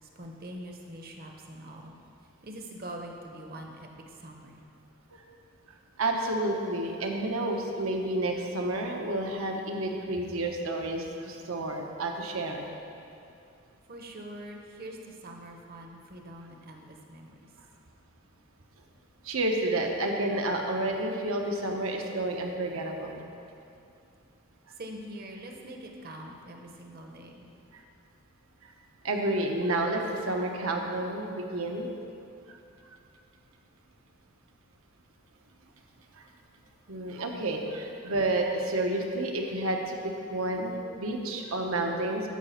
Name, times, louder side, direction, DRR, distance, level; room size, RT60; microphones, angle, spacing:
voice 1, 0.0-2.0 2.4-4.6 13.9-17.5 24.7-27.5, right 1 dB, 45° right, 2 dB, 1.0 m, -44 dB
voice 2, 6.0-12.7 19.2-23.3 27.7-27.8 28.6-28.7 29.0-31.9 32.5-32.6 36.1-36.3 36.9-40.0 40.3-42.3, right 1 dB, 75° right, 2 dB, 1.0 m, -30 dB
12.5 x 5.0 x 5.7 m, 2.6 s
head